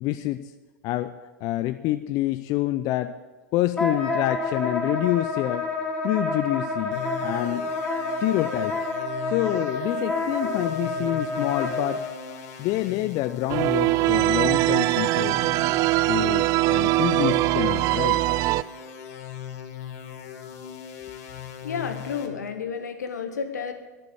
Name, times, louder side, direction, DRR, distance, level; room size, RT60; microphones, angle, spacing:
voice 1, 0.0-0.5 0.8-1.1 1.4-3.1 3.5-5.6 6.0-7.7 8.2-8.8 9.3-12.1 12.6-15.4 16.0-18.2, left 16 dB, 40° left, 11 dB, 0.5 m, -27 dB
Wind instrument woodwind instrument, 3.8-12.0, left 3 dB, 5° left, 3.4 m, -28 dB
sound 1, 6.9-22.3, left 9 dB, 55° left, 1.8 m, -40 dB
sound 2, 13.5-18.6, right 18 dB, 35° right, 0.4 m, -22 dB
voice 2, 21.6-23.7, left 6 dB, 70° left, 7 dB, 1.6 m, -31 dB
11.5 x 10.5 x 8.6 m, 1.2 s
figure-of-eight pair, 90°, 9 cm